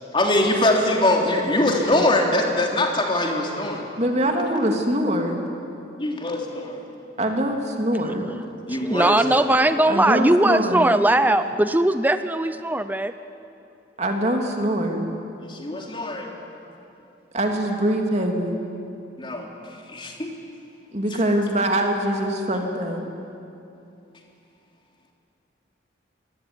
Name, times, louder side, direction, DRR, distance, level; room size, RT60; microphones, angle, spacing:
voice 1, 0.1-3.9 6.0-6.9 8.7-9.6 15.4-16.3 19.2-19.5 19.9-20.3 21.3-21.4, left 1 dB, 25° left, 1 dB, 3.3 m, -23 dB
voice 2, 4.0-5.4 7.2-8.3 9.9-10.9 14.0-15.1 17.3-18.6 20.9-23.1, right 1 dB, 35° right, 3 dB, 2.8 m, -23 dB
voice 3, 8.7-13.1, right 1 dB, 10° right, 10 dB, 0.6 m, -19 dB
26.5 x 21.5 x 9.8 m, 2.7 s
head